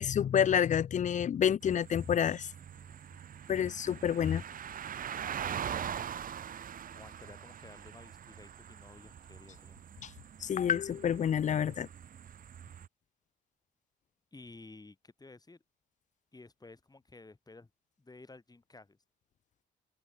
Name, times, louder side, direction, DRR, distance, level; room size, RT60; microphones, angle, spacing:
voice 1, 0.0-2.5 3.5-4.4 10.0-10.1 10.4-11.9, left 9 dB, 40° left, 0.4 m, -28 dB
sound 1, 1.6-12.9, right 9 dB, 45° right, 0.7 m, -43 dB
voice 2, 5.7-6.1 6.9-9.8 14.3-15.6 16.3-17.7 18.0-19.0, left 3 dB, 20° left, 6.8 m, -54 dB
open air
cardioid pair, 90°, 20 cm